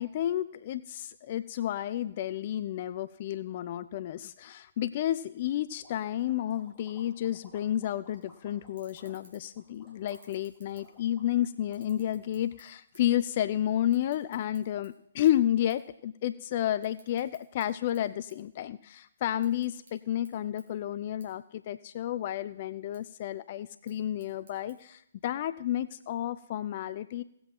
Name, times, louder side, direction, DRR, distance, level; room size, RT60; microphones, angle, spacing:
voice 1, 0.0-27.2, left 12 dB, 40° left, 15 dB, 0.4 m, -31 dB
sound 1, 5.8-13.1, left 1 dB, 5° right, 4.1 m, -58 dB
sound 2, 8.2-8.3 8.7-9.6 10.0-11.3 11.6-13.2 13.5-14.9 15.3-15.4 15.7-15.9 16.2-17.7 17.9-18.9 19.3-19.9 20.2-20.3 20.6-20.7 21.2-21.3 21.7-22.2 22.7-23.0 23.7-24.7, right 2 dB, 50° right, 3.2 m, -58 dB
17.5 x 7.8 x 4.5 m, 0.75 s
figure-of-eight pair, 130°, 0 cm